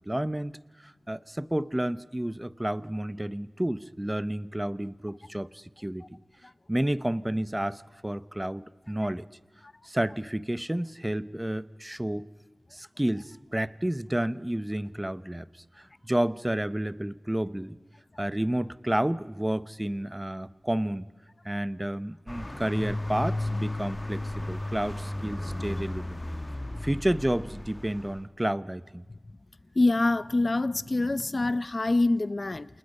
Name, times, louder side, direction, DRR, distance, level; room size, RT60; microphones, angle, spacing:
voice 1, 0.1-0.6 0.8-6.2 6.7-9.3 9.8-12.3 12.7-15.5 15.8-17.8 18.2-21.1 21.4-26.2 26.8-29.0, right 1 dB, 15° right, 0.8 m, -30 dB
sound 1, 22.3-28.2, left 1 dB, 25° left, 1.2 m, -34 dB
voice 2, 29.8-32.7, left 2 dB, 45° left, 0.7 m, -25 dB
28.5 x 28.5 x 5.4 m
wide cardioid pair, 70°, 0 cm